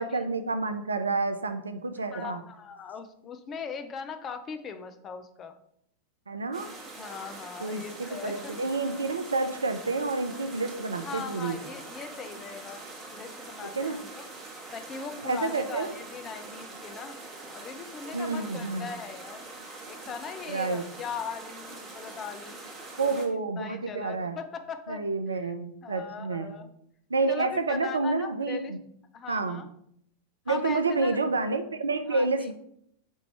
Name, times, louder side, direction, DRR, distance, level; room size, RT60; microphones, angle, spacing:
voice 1, 0.0-2.4 6.3-6.7 7.6-11.6 13.8-14.0 15.2-15.9 18.1-18.9 20.5-20.8 23.0-24.4 24.9-26.5 27.1-28.8 29.3-29.6 30.5-32.5, right 3 dB, 75° right, 9 dB, 0.4 m, -29 dB
voice 2, 2.1-5.6 6.9-8.6 11.0-14.2 14.7-17.2 17.5-19.4 19.9-23.2 23.6-25.0 25.3-25.5 25.8-26.7 27.3-28.7 29.1-29.7 30.5-31.2 32.1-32.5, left 6 dB, 25° left, 8 dB, 0.4 m, -40 dB
sound 1, 6.5-23.3, right 2 dB, 20° right, 1.1 m, -43 dB
4.5 x 2.6 x 4.3 m, 0.72 s
figure-of-eight pair, 90°, 0 cm